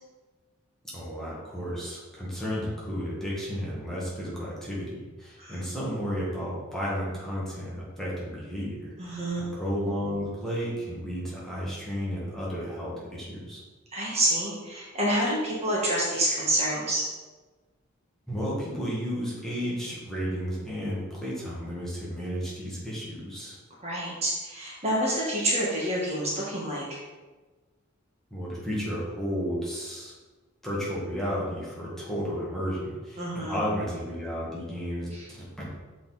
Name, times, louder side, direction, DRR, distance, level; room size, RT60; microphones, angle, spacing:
voice 1, 0.9-8.9 9.4-13.6 18.3-23.6 28.3-30.1 30.6-35.1 35.4-35.7, equal, ahead, -7 dB, 1.8 m, -33 dB
voice 2, 9.0-9.5 13.9-17.0 23.8-27.0 33.2-33.7 35.1-35.2, right 1 dB, 30° right, -5 dB, 1.7 m, -28 dB
6.8 x 4.6 x 4.1 m, 1.3 s
head